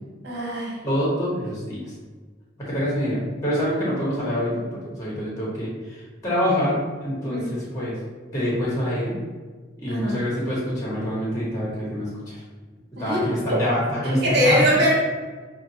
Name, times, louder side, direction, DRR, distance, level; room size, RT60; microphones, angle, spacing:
voice 1, 0.2-0.8 7.2-7.4 9.9-10.2 13.0-13.6 14.0-14.9, equal, 55° right, -4 dB, 1.4 m, -22 dB
voice 2, 0.8-1.8 2.6-8.0 8.3-9.1 9.8-12.4 13.0-14.6, equal, 20° left, -6 dB, 1.2 m, -26 dB
5.7 x 2.3 x 2.8 m, 1.4 s
head